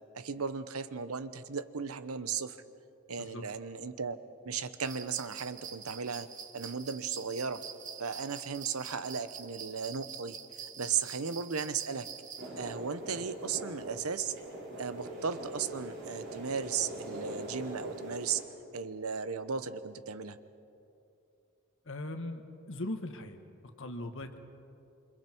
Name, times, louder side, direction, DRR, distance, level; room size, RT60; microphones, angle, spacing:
voice 1, 0.1-2.6 3.1-4.2 4.4-6.3 6.5-7.6 8.0-10.4 10.8-12.1 12.6-14.3 14.8-18.4 18.7-20.4, right 6 dB, 90° right, 12 dB, 0.9 m, -36 dB
sound 1, 4.8-12.5, right 7 dB, 35° right, 1.2 m, -46 dB
sound 2, 12.4-18.4, right 1 dB, 70° right, 5.0 m, -42 dB
voice 2, 21.8-23.4 23.8-24.4, left 1 dB, 60° left, 6 dB, 1.6 m, -39 dB
27.5 x 26.0 x 4.6 m, 2.7 s
head